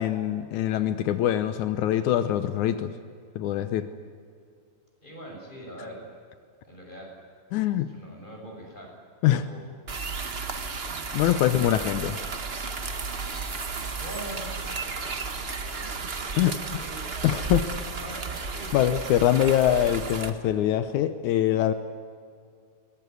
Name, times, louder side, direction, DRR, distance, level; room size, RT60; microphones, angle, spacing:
voice 1, 0.0-2.9 3.4-3.9 7.5-7.9 9.2-9.4 11.1-12.2 16.4-16.8 17.2-17.7 18.7-21.7, left 11 dB, 80° left, 11 dB, 2.3 m, -24 dB
voice 2, 5.0-6.1 6.6-7.1 7.9-8.9 9.3-9.7 14.0-14.6 16.8-17.4 18.0-18.8, right 1 dB, 15° left, 0 dB, 6.6 m, -42 dB
Garden rain, 9.9-20.3, right 4 dB, 65° right, 0.6 m, -33 dB
22.5 x 19.5 x 9.4 m, 2.2 s
omnidirectional pair, 3.4 m